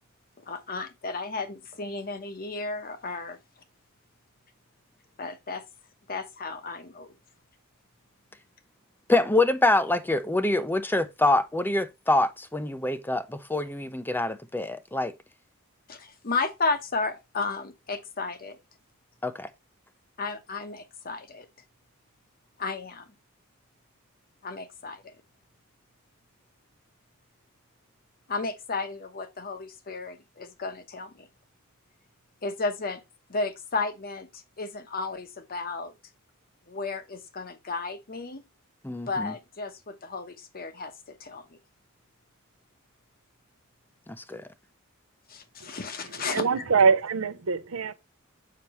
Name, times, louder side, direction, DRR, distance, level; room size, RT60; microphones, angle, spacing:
voice 1, 0.4-3.4 5.2-5.6 6.1-7.2 15.9-18.6 20.2-21.5 22.6-23.1 24.4-25.1 28.3-31.3 32.4-33.0 33.3-35.9 36.7-38.4 39.1-41.6 45.3-46.6, left 3 dB, 45° left, 1.0 m, -33 dB
voice 2, 9.1-15.1 19.2-19.5 38.8-39.3 44.1-44.4, left 2 dB, 10° left, 0.6 m, -25 dB
voice 3, 46.2-47.9, right 5 dB, 75° right, 0.7 m, -24 dB
6.9 x 5.9 x 3.0 m
head